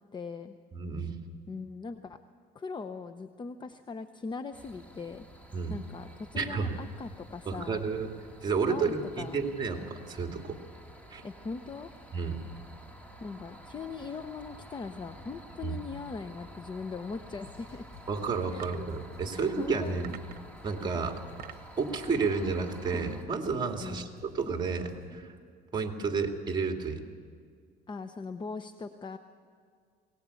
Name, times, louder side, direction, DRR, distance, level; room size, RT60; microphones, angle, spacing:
voice 1, 0.1-0.6 1.5-2.2 2.5-5.3 5.7-7.8 8.7-9.4 11.2-11.9 13.2-17.9 18.5-18.8 19.3-20.2 23.8-24.1 27.9-29.2, left 4 dB, 25° left, 9 dB, 0.8 m, -40 dB
voice 2, 0.7-1.2 5.5-5.8 6.4-6.7 7.5-8.1 8.4-10.6 11.1-11.2 12.1-12.4 15.6-15.8 18.1-20.1 20.6-21.2 21.8-25.3 25.7-27.0, right 4 dB, 25° right, 3 dB, 2.4 m, -31 dB
sound 1, 4.5-23.2, right 1 dB, 10° left, 2.5 m, -50 dB
sound 2, 17.4-25.1, left 5 dB, 65° left, 5.5 m, -55 dB
sound 3, 18.6-18.9 20.0-20.6 21.1-21.8, right 11 dB, 60° right, 1.1 m, -47 dB
21.5 x 18.0 x 8.4 m, 2.1 s
cardioid pair, 110°, 17 cm